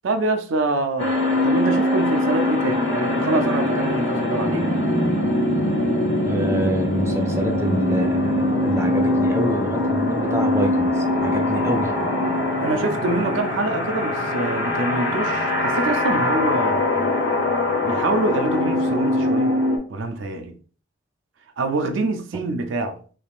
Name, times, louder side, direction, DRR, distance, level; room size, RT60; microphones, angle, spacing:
voice 1, 0.0-4.7 12.6-16.9 17.8-19.5 19.9-20.5 21.6-23.0, right 2 dB, 85° right, 0.5 m, -25 dB
sound 1, 1.0-19.8, left 1 dB, 70° left, 1.0 m, -22 dB
voice 2, 6.3-11.9, equal, 15° right, 0.4 m, -26 dB
3.4 x 3.3 x 2.3 m
head